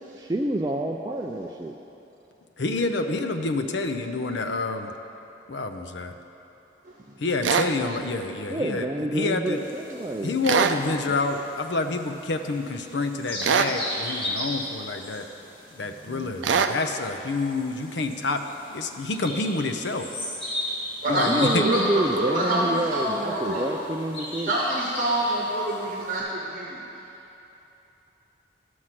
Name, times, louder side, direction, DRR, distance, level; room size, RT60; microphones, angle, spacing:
voice 1, 0.1-1.7 8.5-10.4 16.0-16.3 21.1-24.5, right 1 dB, 20° right, 1 dB, 0.3 m, -28 dB
voice 2, 2.6-4.9 5.5-6.1 7.2-8.9 9.1-9.6 10.2-15.3 15.7-18.4 18.7-20.1 21.1-21.6, left 3 dB, 70° left, 6 dB, 0.6 m, -28 dB
sound 1, 7.4-7.7 10.4-10.8 13.4-13.8 16.4-16.8, right 6 dB, 80° right, 0.4 m, -22 dB
sound 2, 9.5-26.2, left 1 dB, 30° left, 2.4 m, -37 dB
voice 3, 21.0-21.8 22.1-23.7 24.5-26.8, right 1 dB, 45° right, -4 dB, 1.2 m, -26 dB
12.5 x 6.3 x 5.9 m, 3.0 s
head